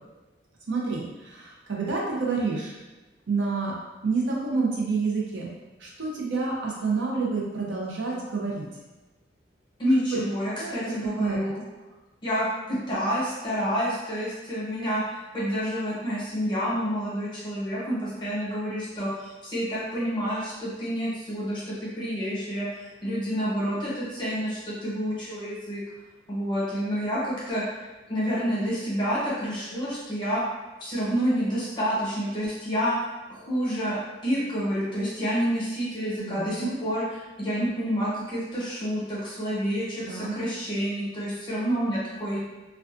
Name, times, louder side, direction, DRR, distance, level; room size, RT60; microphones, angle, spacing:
voice 1, 0.7-2.7 3.3-3.7 4.0-5.5 5.8-8.7 10.1-10.2 10.6-11.4 36.2-36.8 40.1-40.4, right 4 dB, 80° right, -3 dB, 0.6 m, -28 dB
voice 2, 9.8-11.6 12.2-22.7 23.0-25.8 26.3-27.6 28.1-30.4 30.8-32.9 33.3-42.4, equal, 25° left, -8 dB, 0.8 m, -28 dB
2.3 x 2.3 x 2.5 m, 1.2 s
head